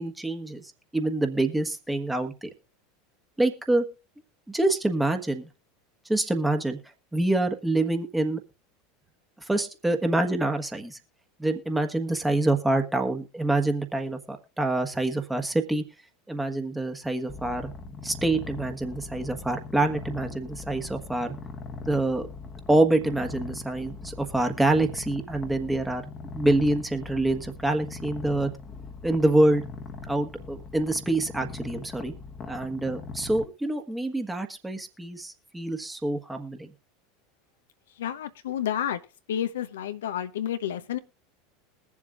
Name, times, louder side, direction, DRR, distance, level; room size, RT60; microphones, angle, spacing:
voice 1, 0.0-2.5 3.4-3.8 4.5-5.5 6.1-6.8 7.1-8.4 9.4-11.0 11.4-15.8 16.3-17.7 18.0-21.3 21.9-22.3 22.7-26.0 26.3-28.5 29.0-29.6 30.1-32.1 32.5-36.7, right 2 dB, 10° right, 1.4 m, -26 dB
Purr, 17.3-33.5, left 4 dB, 30° left, 1.2 m, -40 dB
voice 2, 38.0-39.0 39.3-41.0, left 10 dB, 70° left, 0.7 m, -30 dB
21.5 x 7.3 x 2.4 m
figure-of-eight pair, 80°, 0 cm